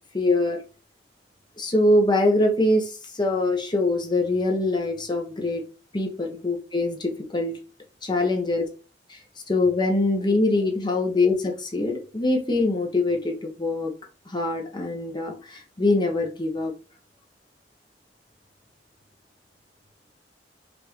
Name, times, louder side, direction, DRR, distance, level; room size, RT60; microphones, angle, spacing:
voice 1, 0.1-0.6 1.6-5.6 5.9-7.5 8.0-8.6 9.1-9.2 9.5-13.9 14.3-16.7, left 2 dB, 25° left, 0.8 m, -23 dB
5.1 x 2.5 x 3.0 m
head